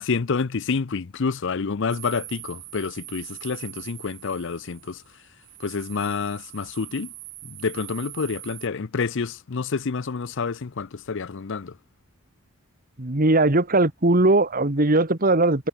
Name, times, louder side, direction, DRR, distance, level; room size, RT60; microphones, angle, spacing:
voice 1, 0.0-5.0 5.6-7.1 7.4-11.8, left 5 dB, 60° left, 0.6 m, -28 dB
sound 1, 1.9-8.7, right 18 dB, 55° right, 3.1 m, -42 dB
voice 2, 13.0-15.7, right 2 dB, 40° right, 1.8 m, -19 dB
head